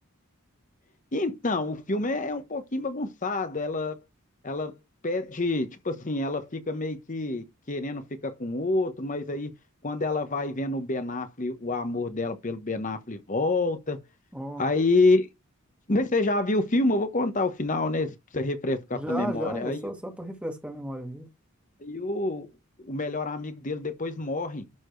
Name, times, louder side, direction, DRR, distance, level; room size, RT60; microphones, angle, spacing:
voice 1, 1.1-4.0 4.4-4.7 5.0-9.5 9.8-14.0 14.6-15.3 15.9-19.8 21.8-22.5 22.8-24.6, left 2 dB, 35° left, 1.0 m, -28 dB
voice 2, 14.3-14.6 18.9-21.3, equal, 5° right, 1.9 m, -34 dB
11.5 x 4.2 x 3.2 m
head